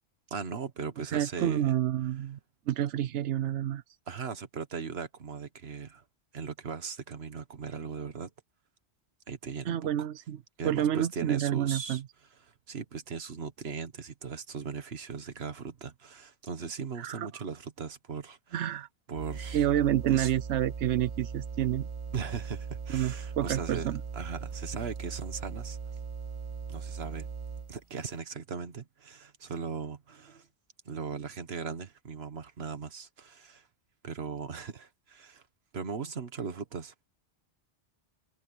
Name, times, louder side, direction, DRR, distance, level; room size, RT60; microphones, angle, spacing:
voice 1, 0.3-1.7 4.1-6.0 6.3-8.3 9.3-10.1 10.6-12.0 12.4-18.6 19.1-19.7 20.1-20.3 22.1-25.8 26.7-27.3 27.7-30.5 30.8-33.7 34.0-35.4 35.7-37.0, right 5 dB, 65° right, 1.6 m, -38 dB
voice 2, 1.0-2.4 2.7-3.8 9.7-10.4 10.6-12.0 17.0-17.3 18.5-18.9 19.5-21.9 22.9-24.0, right 11 dB, 90° right, 0.9 m, -29 dB
sound 1, 19.1-27.8, right 6 dB, 35° right, 0.6 m, -39 dB
omnidirectional pair, 1.2 m